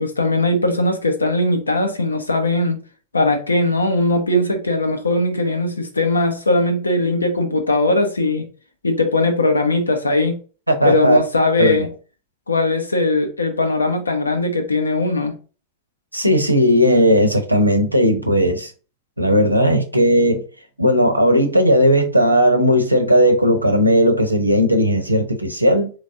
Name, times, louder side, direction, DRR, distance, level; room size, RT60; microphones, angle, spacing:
voice 1, 0.0-2.8 3.1-8.5 8.8-10.4 10.8-11.9 12.5-15.3, left 2 dB, 80° left, 0.8 m, -19 dB
voice 2, 10.7-11.2 11.6-11.9 16.1-18.7 19.2-20.4 20.8-25.9, equal, 90° right, 0.8 m, -16 dB
4.0 x 3.1 x 3.5 m
figure-of-eight pair, 90°, 0 cm